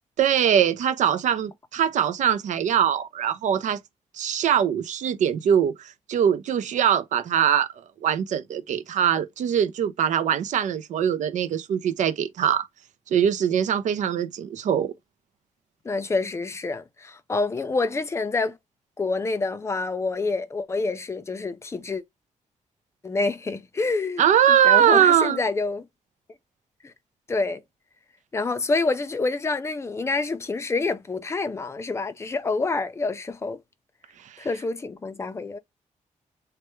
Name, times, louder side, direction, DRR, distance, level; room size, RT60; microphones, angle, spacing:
voice 1, 0.2-3.8 4.1-7.7 8.0-12.7 13.1-14.9 24.2-25.4 34.2-34.5, right 9 dB, 70° right, 0.5 m, -22 dB
voice 2, 15.8-18.6 19.0-22.0 23.0-24.2 24.5-25.9 26.8-26.9 27.3-27.6 28.3-33.6 34.4-35.6, left 3 dB, 20° left, 0.4 m, -27 dB
3.3 x 2.2 x 3.0 m
wide cardioid pair, 150°, 13 cm